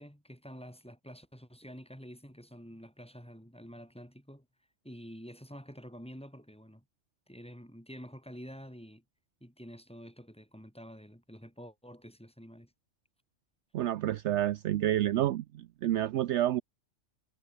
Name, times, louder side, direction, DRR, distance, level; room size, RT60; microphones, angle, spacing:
voice 1, 0.0-4.5 4.8-6.8 7.3-9.0 9.4-12.7, equal, 5° left, 5.4 m, -48 dB
voice 2, 13.7-16.6, right 13 dB, 70° right, 0.8 m, -29 dB
omnidirectional pair, 1.3 m